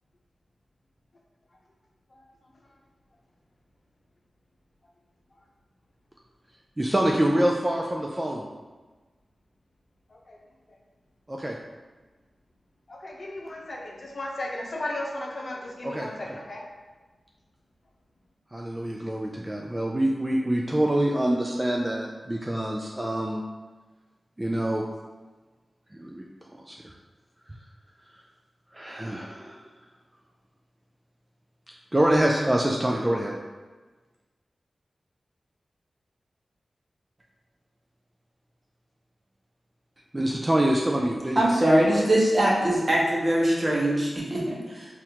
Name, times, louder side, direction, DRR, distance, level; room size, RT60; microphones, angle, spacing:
voice 1, 6.8-8.4 11.3-11.6 15.8-16.4 18.5-23.4 24.4-24.8 26.0-26.3 26.7-26.8 28.7-29.6 31.9-33.3 40.1-41.5 41.9-42.0, right 1 dB, 20° right, -1 dB, 0.3 m, -25 dB
voice 2, 12.9-16.6, left 1 dB, 60° left, -2 dB, 0.7 m, -35 dB
voice 3, 41.4-44.9, right 1 dB, 40° right, -4 dB, 0.9 m, -22 dB
4.1 x 2.5 x 2.8 m, 1.3 s
cardioid pair, 60°, 0 cm